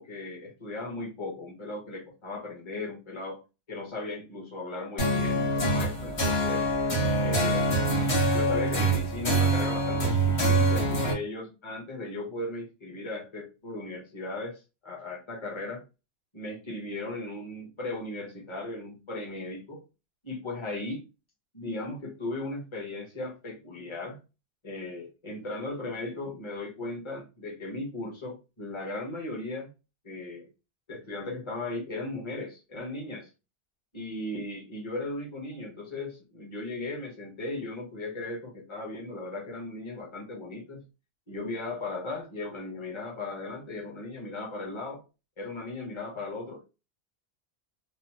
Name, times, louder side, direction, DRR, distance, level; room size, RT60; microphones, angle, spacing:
voice 1, 0.0-3.4 3.7-6.7 7.2-7.8 8.3-15.8 16.3-19.8 20.2-21.1 21.5-24.2 24.6-29.7 30.0-30.5 30.9-33.3 33.9-40.8 41.3-45.0 45.4-46.7, left 2 dB, 30° left, 1.0 m, -37 dB
sound 1, 5.0-11.1, right 1 dB, 90° left, 1.5 m, -25 dB
3.0 x 2.0 x 2.9 m
omnidirectional pair, 1.1 m